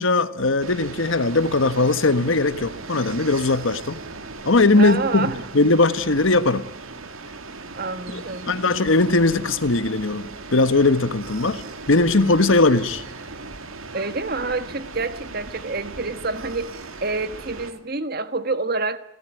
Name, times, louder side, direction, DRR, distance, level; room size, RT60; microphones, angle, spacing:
voice 1, 0.0-4.0 4.4-6.7 8.1-13.0, left 2 dB, 70° left, 1.3 m, -20 dB
sound 1, 0.6-17.7, right 3 dB, 85° right, 2.3 m, -38 dB
voice 2, 4.8-5.4 7.8-8.5 13.9-19.0, right 3 dB, 45° right, 1.4 m, -27 dB
28.5 x 17.5 x 9.1 m
head